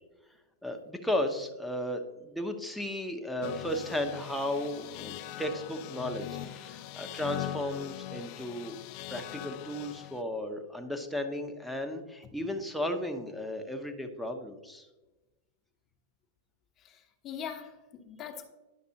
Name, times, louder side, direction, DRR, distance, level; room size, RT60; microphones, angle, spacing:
voice 1, 0.6-8.8 9.1-14.9, left 1 dB, ahead, 3 dB, 0.9 m, -35 dB
sound 1, 3.4-10.2, left 13 dB, 50° left, 0.3 m, -41 dB
voice 2, 16.8-18.4, left 8 dB, 35° left, 4 dB, 1.0 m, -42 dB
9.9 x 5.9 x 2.8 m, 1.1 s
hypercardioid pair, 105°, 0 cm